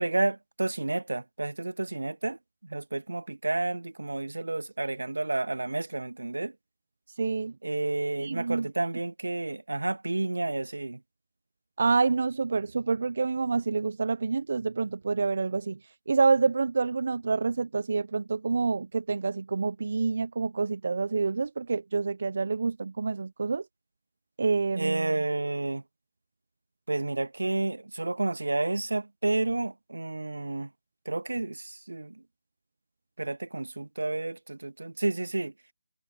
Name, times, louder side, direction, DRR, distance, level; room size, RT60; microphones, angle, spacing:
voice 1, 0.0-6.5 7.6-11.0 24.7-25.8 26.9-30.7 31.1-32.2 33.2-35.5, right 2 dB, 75° right, 2.2 m, -30 dB
voice 2, 7.1-7.5 8.2-8.7 11.8-23.7 24.4-25.1, right 4 dB, 55° right, 0.8 m, -27 dB
figure-of-eight pair, 155°, 0 cm